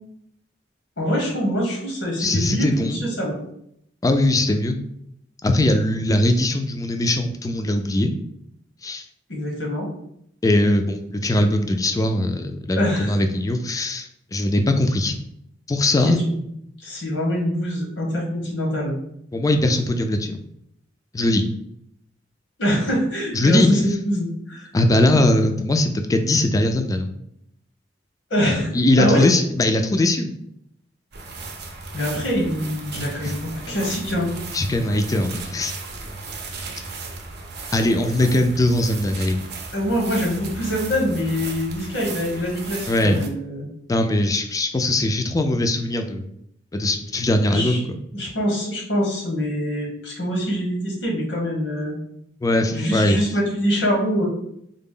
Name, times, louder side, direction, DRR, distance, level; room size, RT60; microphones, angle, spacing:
voice 1, 1.0-3.4 9.3-9.9 12.7-13.1 16.8-18.9 22.6-24.7 28.3-28.7 29.0-29.2 31.9-34.3 39.7-43.7 47.5-47.8 48.1-51.9 52.7-54.3, equal, 85° left, -1 dB, 1.1 m, -24 dB
voice 2, 2.2-3.0 4.0-4.8 5.4-8.1 8.8-9.0 10.4-15.2 15.7-16.2 19.3-20.4 21.1-21.4 23.3-23.9 24.7-27.1 28.7-30.3 33.2-33.4 34.5-35.7 37.7-39.4 42.9-43.2 43.9-46.3 46.7-48.0 52.4-53.2, left 1 dB, 20° left, 6 dB, 0.3 m, -20 dB
sound 1, 31.1-43.3, right 3 dB, 60° right, 0.6 m, -35 dB
3.8 x 2.0 x 3.7 m, 0.73 s
head